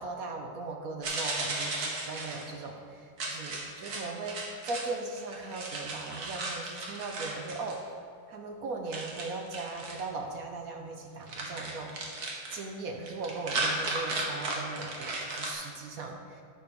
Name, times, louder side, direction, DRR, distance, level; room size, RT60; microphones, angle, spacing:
voice 1, 0.0-7.9 8.3-12.2 12.5-16.4, right 3 dB, 75° right, 3 dB, 0.8 m, -38 dB
sound 1, 1.0-2.5 3.2-4.9 5.1-7.8 8.9-10.0 11.3-12.6 13.1-15.5, right 2 dB, 50° right, 1.7 m, -35 dB
10.0 x 5.3 x 6.8 m, 2.3 s
omnidirectional pair, 2.4 m